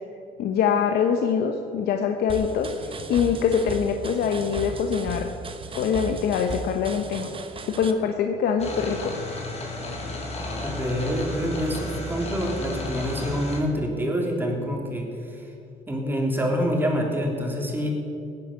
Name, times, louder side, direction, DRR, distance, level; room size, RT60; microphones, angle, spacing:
voice 1, 0.4-5.3 5.7-7.3 7.7-9.1, left 7 dB, 70° left, 4 dB, 1.1 m, -24 dB
sound 1, 2.3-7.9, right 3 dB, 30° right, 1.3 m, -36 dB
sound 2, 8.6-13.6, left 1 dB, 40° left, 3.5 m, -33 dB
voice 2, 10.6-15.1 15.9-17.9, equal, 10° right, 0 dB, 3.3 m, -26 dB
17.0 x 10.0 x 7.2 m, 2.7 s
cardioid pair, 110°, 17 cm